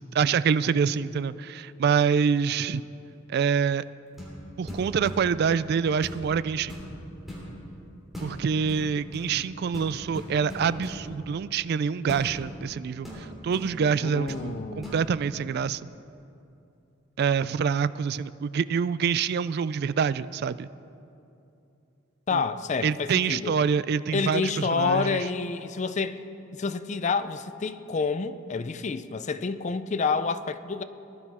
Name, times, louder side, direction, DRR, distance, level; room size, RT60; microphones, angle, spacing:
voice 1, 0.1-2.8 3.3-3.8 4.6-6.7 8.2-15.8 17.2-20.7 22.3-22.4 22.8-25.2, right 6 dB, 50° right, 16 dB, 0.3 m, -26 dB
sound 1, 4.1-4.4 4.7-5.7 6.0-6.3 6.7-7.5 8.1-8.4 8.7-9.3 9.7-11.0 12.1-12.3 13.0-14.0 14.3-14.5 14.8-15.0, left 1 dB, ahead, 3.4 m, -39 dB
voice 2, 14.0-14.9 22.3-23.6 24.1-26.2 26.5-30.8, left 4 dB, 35° left, 12 dB, 0.4 m, -28 dB
19.0 x 11.5 x 4.2 m, 2.7 s
head